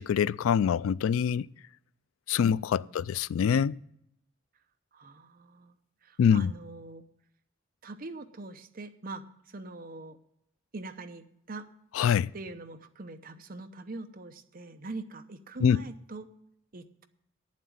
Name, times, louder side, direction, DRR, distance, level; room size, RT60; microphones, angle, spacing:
voice 1, 0.0-1.5 2.3-3.8 6.2-6.5 11.9-12.3 15.6-15.8, left 7 dB, 90° left, 0.3 m, -25 dB
voice 2, 4.9-5.7 6.0-7.0 7.8-10.2 10.7-11.7 12.3-16.3 16.7-17.1, right 3 dB, 45° right, 0.8 m, -43 dB
9.3 x 7.4 x 8.6 m
head